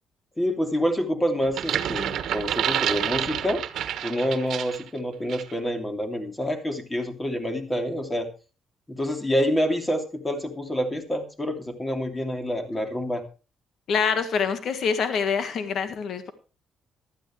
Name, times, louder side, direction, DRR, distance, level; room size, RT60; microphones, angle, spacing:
voice 1, 0.4-3.6 4.0-8.3 8.9-13.2, equal, 15° left, 4 dB, 3.0 m, -27 dB
sound 1, 1.4-4.9 5.3-5.5, right 10 dB, 75° right, 1.4 m, -28 dB
voice 2, 13.9-16.3, left 6 dB, 65° left, 9 dB, 1.6 m, -25 dB
15.0 x 12.5 x 3.3 m, 0.33 s
cardioid pair, 90°, 0 cm